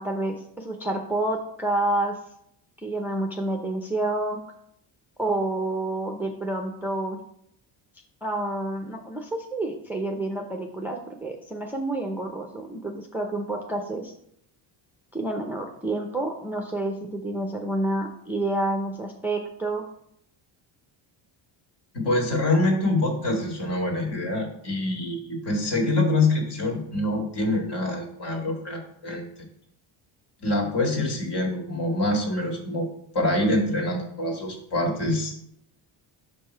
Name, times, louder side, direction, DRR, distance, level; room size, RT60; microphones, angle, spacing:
voice 1, 0.0-2.2 2.8-4.4 5.2-7.2 8.2-14.1 15.1-19.8, right 2 dB, 5° right, 2 dB, 0.5 m, -29 dB
voice 2, 21.9-29.2 30.4-32.9 33.1-35.5, left 2 dB, 55° left, 2 dB, 2.1 m, -25 dB
5.8 x 5.3 x 4.4 m, 0.72 s
cardioid pair, 125°, 50 cm